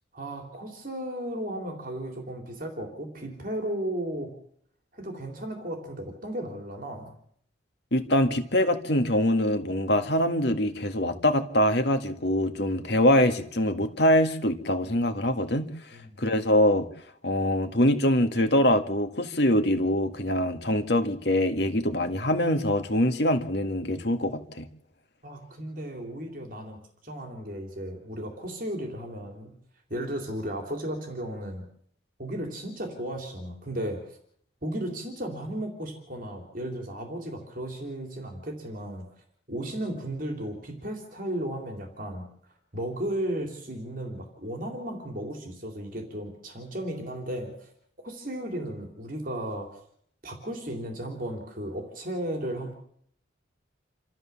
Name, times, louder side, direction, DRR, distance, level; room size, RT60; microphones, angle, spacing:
voice 1, 0.1-4.3 4.9-7.2 15.9-16.2 25.2-26.8 27.0-29.5 29.9-31.7 32.2-34.2 34.6-39.1 39.5-42.3 42.7-47.7 48.0-49.7 50.2-52.7, right 1 dB, 45° right, 3 dB, 3.5 m, -35 dB
voice 2, 7.9-15.7 16.2-16.9 17.2-24.7, left 1 dB, 60° left, 7 dB, 1.9 m, -24 dB
28.5 x 13.5 x 7.2 m, 0.65 s
head